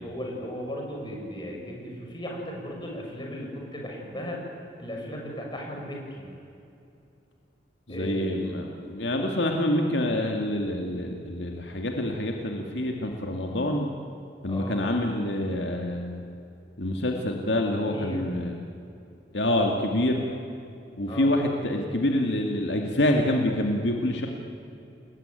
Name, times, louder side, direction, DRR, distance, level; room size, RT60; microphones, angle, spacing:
voice 1, 0.0-4.4 4.8-6.3 7.9-8.4 14.5-14.8 17.8-18.2 21.1-21.3, equal, 25° left, 0 dB, 6.4 m, -36 dB
voice 2, 7.9-13.9 14.4-16.2 16.8-18.6 19.3-20.3 21.0-24.3, left 1 dB, 65° left, 2 dB, 2.3 m, -26 dB
29.5 x 20.5 x 9.2 m, 2.6 s
head